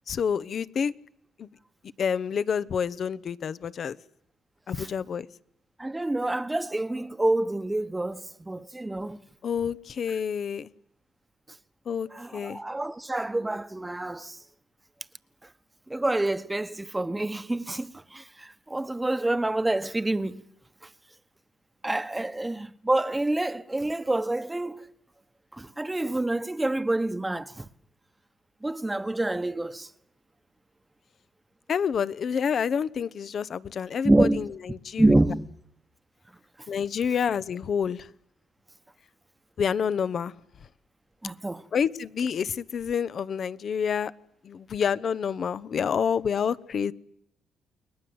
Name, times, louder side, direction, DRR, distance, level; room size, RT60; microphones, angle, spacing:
voice 1, 0.1-0.9 1.4-1.5 2.0-4.0 4.7-5.3 9.4-10.7 11.9-12.1 12.3-12.6 31.7-35.1 36.7-38.1 39.6-40.3 41.7-44.1 44.4-46.9, left 7 dB, 55° left, 1.1 m, -28 dB
voice 2, 5.8-9.2 12.1-14.4 15.9-20.4 21.8-24.9 25.5-27.7 28.6-29.9 34.0-34.5 35.0-35.5 41.2-41.7, right 2 dB, 15° right, 1.3 m, -27 dB
30.0 x 22.0 x 8.0 m
cardioid pair, 90°, 0 cm